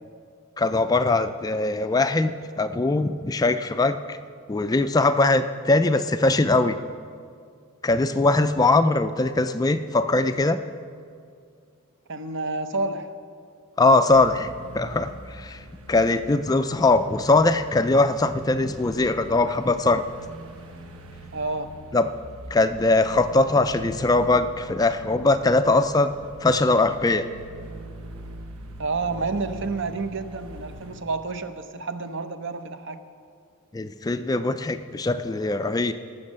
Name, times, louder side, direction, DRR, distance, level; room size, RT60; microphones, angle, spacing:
voice 1, 0.6-4.2 4.5-6.8 7.8-10.6 13.8-15.6 15.9-20.0 21.9-22.1 22.5-26.1 26.4-27.3 33.7-35.9, left 2 dB, 15° left, 10 dB, 0.3 m, -21 dB
voice 2, 12.1-13.1 21.3-21.7 28.8-33.0, right 3 dB, 55° right, 9 dB, 0.8 m, -29 dB
sound 1, 14.1-31.0, right 1 dB, 80° right, 1.1 m, -43 dB
18.5 x 6.4 x 7.4 m, 2.3 s
head